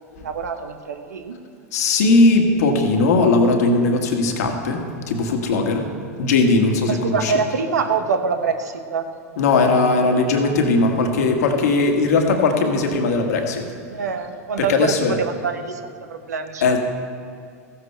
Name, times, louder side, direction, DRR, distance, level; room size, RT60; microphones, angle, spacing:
voice 1, 0.1-1.4 6.9-9.1 12.7-13.0 13.9-15.8 16.1-16.8, right 5 dB, 85° right, 8 dB, 0.9 m, -25 dB
voice 2, 1.7-4.8 5.1-5.9 6.2-7.3 9.4-13.6 14.6-15.2 16.6-16.8, left 3 dB, 75° left, 3 dB, 1.5 m, -18 dB
14.5 x 7.6 x 4.5 m, 2.3 s
hypercardioid pair, 95°, 9 cm